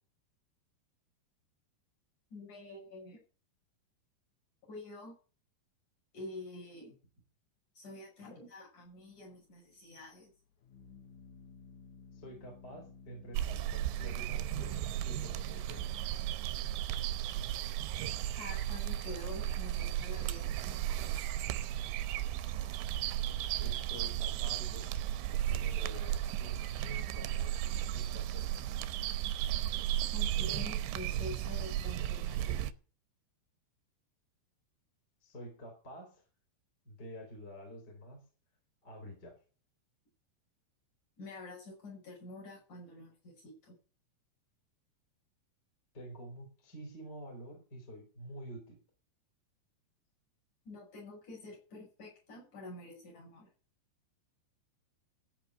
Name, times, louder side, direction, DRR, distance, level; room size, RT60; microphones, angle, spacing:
voice 1, 2.3-3.2 4.7-5.2 6.1-6.9 7.8-10.3 18.3-21.2 30.1-32.7 41.2-43.7 50.7-53.5, left 2 dB, 40° left, -4 dB, 7.1 m, -47 dB
Organ, 8.9-19.3, left 5 dB, 80° left, 1.7 m, -56 dB
voice 2, 12.1-14.8 15.0-15.9 23.6-24.9 25.4-28.5 35.2-36.2 36.8-38.3 38.8-39.4 45.9-48.8, right 1 dB, 20° left, 1 dB, 4.5 m, -48 dB
sound 1, 13.3-32.7, right 12 dB, 90° right, 3.1 m, -35 dB
15.0 x 5.7 x 8.2 m, 0.39 s
omnidirectional pair, 5.2 m